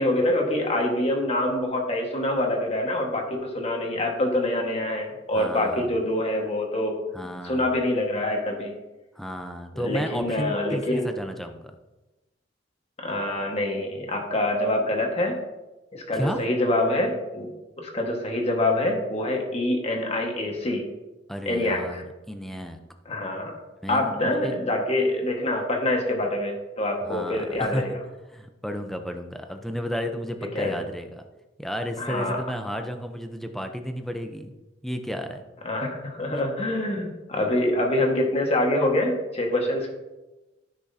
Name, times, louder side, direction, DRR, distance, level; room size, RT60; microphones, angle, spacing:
voice 1, 0.0-7.0 7.4-8.7 9.8-11.1 13.0-15.4 15.9-17.5 17.8-20.8 21.4-22.0 23.0-23.5 23.9-28.0 30.5-30.8 32.0-32.4 35.6-39.9, left 1 dB, 35° left, 1 dB, 1.5 m, -25 dB
voice 2, 5.3-5.9 7.1-7.7 9.2-11.6 16.1-16.4 21.3-22.8 23.8-24.6 27.0-27.8 28.3-31.2 31.6-34.5 34.8-35.4, equal, ahead, 5 dB, 0.7 m, -32 dB
13.5 x 6.2 x 2.8 m, 1.1 s
head